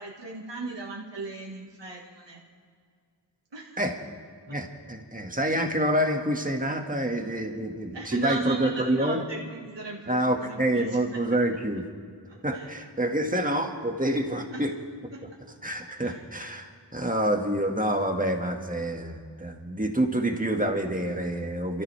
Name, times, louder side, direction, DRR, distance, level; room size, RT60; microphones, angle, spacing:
voice 1, 0.0-2.4 3.5-3.8 4.5-4.6 6.9-7.1 7.6-7.7 7.9-11.2 12.3-12.7 14.5-14.7 15.1-15.2 16.0-16.2, right 3 dB, 80° right, -2 dB, 1.8 m, -36 dB
voice 2, 4.5-9.2 10.1-11.8 12.4-14.7 15.6-21.8, right 1 dB, 20° right, 2 dB, 1.9 m, -27 dB
29.5 x 13.5 x 3.4 m, 2.1 s
wide cardioid pair, 45°, 42 cm